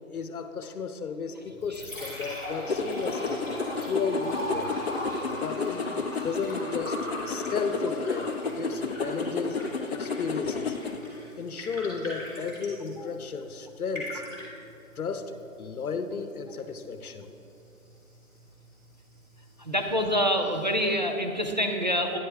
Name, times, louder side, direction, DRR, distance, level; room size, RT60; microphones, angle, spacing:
voice 1, 0.0-3.5 3.8-4.7 5.4-9.6 9.8-10.8 11.4-14.2 15.0-17.3, left 5 dB, 80° left, 9 dB, 0.8 m, -33 dB
Liquid, 1.4-20.4, left 1 dB, 10° right, 1.5 m, -41 dB
sound 1, 2.7-11.0, left 4 dB, 50° left, 0.5 m, -32 dB
voice 2, 19.6-22.2, equal, 35° right, 3 dB, 0.4 m, -26 dB
9.9 x 8.0 x 3.4 m, 2.8 s
hypercardioid pair, 165°, 43 cm